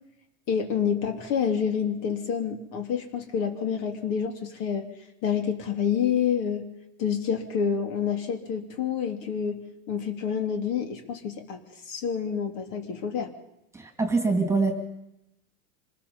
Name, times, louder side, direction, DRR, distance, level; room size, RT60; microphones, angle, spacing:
voice 1, 0.5-4.9 5.2-6.7 7.0-9.6 9.9-11.6 11.9-13.3, left 7 dB, 45° left, 5 dB, 3.2 m, -28 dB
voice 2, 13.7-14.7, right 3 dB, 5° right, 5 dB, 2.7 m, -24 dB
26.5 x 20.0 x 5.6 m, 0.88 s
supercardioid pair, 140°, 42 cm